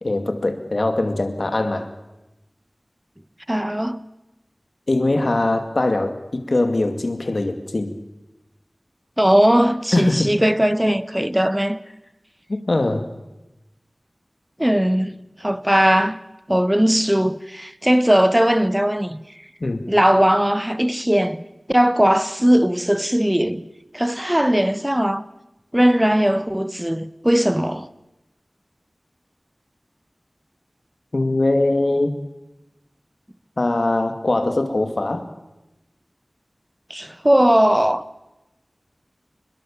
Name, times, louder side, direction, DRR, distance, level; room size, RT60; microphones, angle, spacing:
voice 1, 0.0-1.9 4.9-7.9 9.9-10.3 12.5-13.1 19.6-19.8 31.1-32.2 33.6-35.3, left 2 dB, 65° left, 2.4 m, -21 dB
voice 2, 3.5-4.0 9.2-11.8 14.6-16.2 16.5-19.2 19.9-21.4 21.7-23.7 23.9-25.2 25.7-27.9 36.9-38.0, equal, 10° right, 1.1 m, -18 dB
22.0 x 21.5 x 7.3 m
wide cardioid pair, 45°, 0 cm